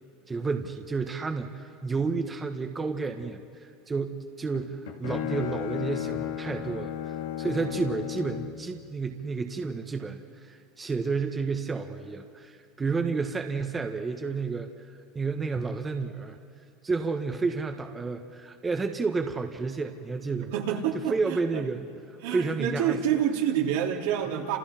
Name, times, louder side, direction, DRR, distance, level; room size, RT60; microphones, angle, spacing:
voice 1, 0.3-16.4 16.8-20.5 20.9-21.8 22.1-23.0, right 4 dB, 20° right, 5 dB, 1.3 m, -31 dB
Bowed string instrument, 4.5-8.7, left 11 dB, 90° left, 2.0 m, -34 dB
voice 2, 20.5-21.6 22.2-24.6, right 9 dB, 75° right, 0 dB, 2.9 m, -28 dB
30.0 x 28.0 x 4.5 m, 2.6 s
supercardioid pair, 115°, 0 cm